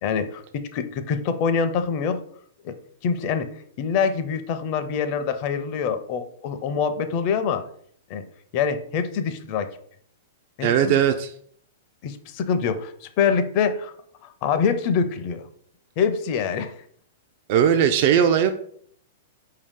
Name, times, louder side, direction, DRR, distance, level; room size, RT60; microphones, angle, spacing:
voice 1, 0.0-2.2 2.6-2.8 3.0-3.5 3.8-7.7 8.1-8.3 8.5-9.7 10.6-11.0 12.0-13.9 14.2-15.5 16.0-16.7, left 6 dB, 45° left, 10 dB, 0.5 m, -25 dB
voice 2, 10.6-11.3 17.5-18.5, right 8 dB, 50° right, 7 dB, 0.3 m, -19 dB
4.5 x 2.7 x 3.6 m, 0.62 s
hypercardioid pair, 115°, 0 cm